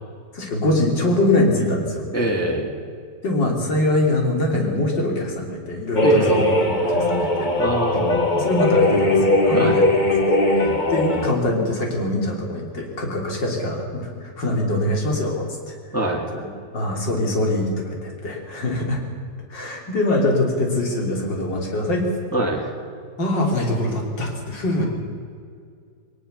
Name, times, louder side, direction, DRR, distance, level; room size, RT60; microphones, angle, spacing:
voice 1, 0.3-2.0 3.2-7.5 8.3-9.8 10.6-15.7 16.3-16.5 16.7-19.0 19.5-22.1 23.2-24.9, left 1 dB, 75° left, 0 dB, 4.1 m, -23 dB
voice 2, 2.1-2.7 6.0-6.5 7.6-8.2 9.5-9.8 15.9-16.2 22.3-22.6, right 1 dB, 10° left, -1 dB, 2.5 m, -23 dB
sound 1, 6.0-11.3, left 2 dB, 25° left, 1.7 m, -19 dB
20.5 x 20.0 x 6.7 m, 2.3 s
omnidirectional pair, 2.0 m